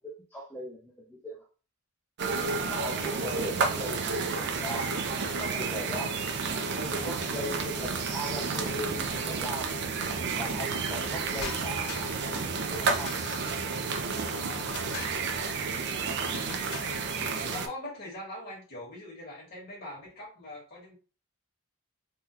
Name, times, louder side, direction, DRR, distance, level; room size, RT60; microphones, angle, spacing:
voice 1, 0.3-1.4 2.7-4.9 5.4-6.1 6.7-9.7 10.4-12.1 12.5-13.2, right 1 dB, 10° left, -3 dB, 0.4 m, -38 dB
sound 1, 2.2-17.7, right 4 dB, 50° right, 0.4 m, -31 dB
voice 2, 2.9-3.4 5.8-6.1 14.3-15.0 17.5-20.9, left 1 dB, 45° left, -4 dB, 1.6 m, -43 dB
sound 2, 11.4-12.3 13.1-13.7 14.7-15.3 16.3-17.1, left 7 dB, 80° left, 0.4 m, -42 dB
3.6 x 2.2 x 2.7 m, 0.36 s
head